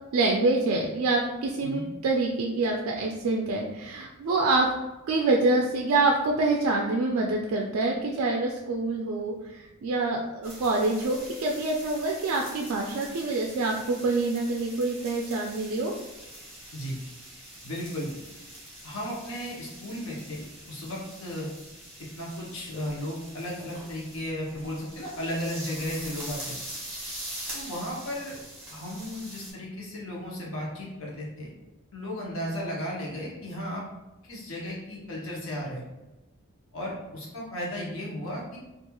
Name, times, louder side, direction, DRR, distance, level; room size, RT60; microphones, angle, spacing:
voice 1, 0.1-4.7 5.1-15.9, right 2 dB, 75° right, 0 dB, 0.3 m, -26 dB
sound 1, 10.4-29.5, right 1 dB, 10° right, 1.2 m, -43 dB
voice 2, 17.6-18.1 18.8-21.5 22.2-26.5 27.5-28.4 28.7-31.5 31.9-33.8 34.3-35.9 36.7-38.6, equal, 65° left, -3 dB, 0.7 m, -35 dB
2.9 x 2.4 x 2.2 m, 1.1 s
head